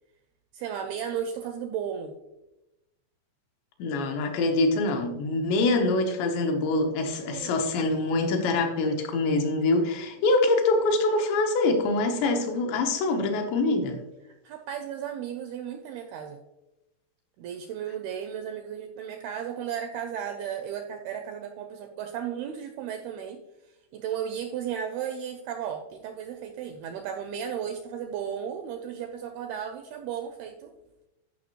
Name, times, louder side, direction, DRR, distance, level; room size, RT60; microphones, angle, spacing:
voice 1, 0.5-2.1 7.3-7.6 14.3-16.4 17.4-23.4 23.9-30.7, right 8 dB, 85° right, 6 dB, 2.2 m, -34 dB
voice 2, 3.8-14.0, left 2 dB, 80° left, 3 dB, 3.3 m, -24 dB
13.5 x 5.6 x 3.0 m, 0.96 s
omnidirectional pair, 5.1 m